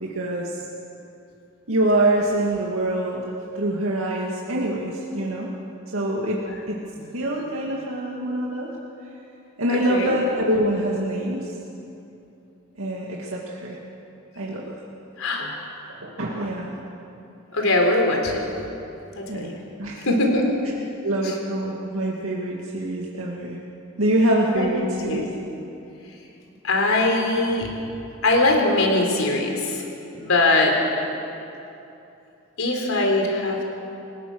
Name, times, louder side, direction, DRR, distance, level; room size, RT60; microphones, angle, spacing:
voice 1, 0.0-0.5 1.7-3.2 3.6-5.5 5.9-6.4 6.7-6.8 7.1-8.7 9.6-11.4 12.8-13.1 13.3-13.8 14.4-14.6 15.4-15.5 16.0-16.7 19.3-19.5 19.8-20.0 21.0-23.6 24.0-25.3, right 1 dB, 90° right, -3 dB, 2.2 m, -24 dB
voice 2, 9.7-10.2 15.2-15.5 17.5-18.5 19.2-19.6 20.0-20.5 21.2-21.4 24.5-24.7 25.0-25.3 26.6-27.7 28.2-29.8 30.1-30.8 32.6-33.6, left 2 dB, 85° left, 1 dB, 4.0 m, -22 dB
28.0 x 17.0 x 6.3 m, 2.8 s
head